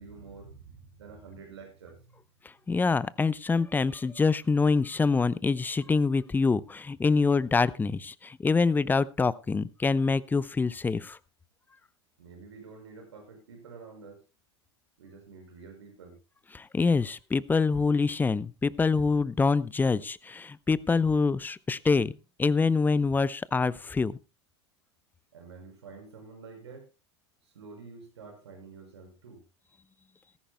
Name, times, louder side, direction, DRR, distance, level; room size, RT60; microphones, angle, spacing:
voice 1, 0.0-2.1 12.2-14.2 15.0-16.2 25.3-26.9 27.4-29.4, right 4 dB, 75° right, 4 dB, 5.9 m, -48 dB
voice 2, 2.7-11.2 16.5-22.1 22.4-24.2, left 4 dB, 15° left, 19 dB, 0.7 m, -25 dB
18.0 x 15.0 x 2.2 m, 0.29 s
figure-of-eight pair, 85°, 14 cm